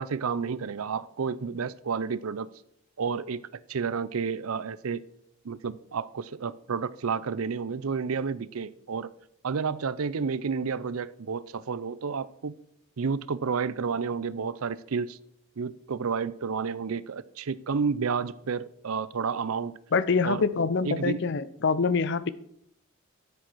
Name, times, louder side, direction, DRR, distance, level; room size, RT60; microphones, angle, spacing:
voice 1, 0.0-2.5 3.0-3.4 3.7-5.0 5.4-9.1 9.4-12.5 13.0-15.2 15.6-19.7 20.2-20.4 20.8-21.3, right 5 dB, 80° right, 0.5 m, -30 dB
voice 2, 19.9-22.3, left 4 dB, 55° left, 0.6 m, -25 dB
12.5 x 7.6 x 4.7 m
head